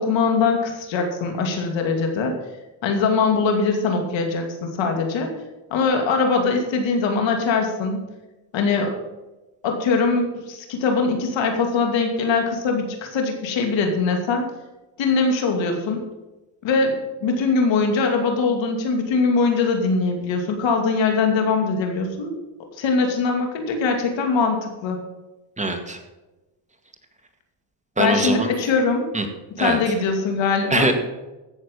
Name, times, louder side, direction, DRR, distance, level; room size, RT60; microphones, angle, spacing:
voice 1, 0.0-2.3 2.8-5.3 5.7-8.0 8.5-9.0 9.6-14.5 15.0-16.0 16.6-22.4 22.8-25.0 28.0-29.1 29.6-30.9, left 4 dB, 80° left, 4 dB, 2.7 m, -22 dB
voice 2, 25.6-26.0 28.0-28.5 29.1-29.3 29.6-29.8 30.7-30.9, right 2 dB, 15° right, 4 dB, 2.0 m, -22 dB
15.5 x 6.9 x 5.5 m, 1.1 s
cardioid pair, 90°, 45 cm